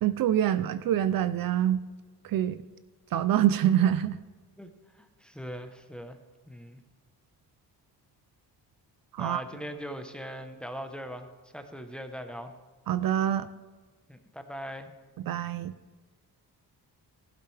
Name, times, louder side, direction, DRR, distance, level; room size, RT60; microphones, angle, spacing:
voice 1, 0.0-1.8 2.2-2.6 3.1-4.2 9.1-9.4 12.9-13.5 15.3-15.7, right 11 dB, 60° right, 14 dB, 0.5 m, -25 dB
voice 2, 4.9-6.2 6.5-6.8 9.2-11.3 11.5-12.5 14.1-14.9, equal, ahead, 7 dB, 0.8 m, -40 dB
15.0 x 11.5 x 3.3 m, 1.4 s
cardioid pair, 140°, 39 cm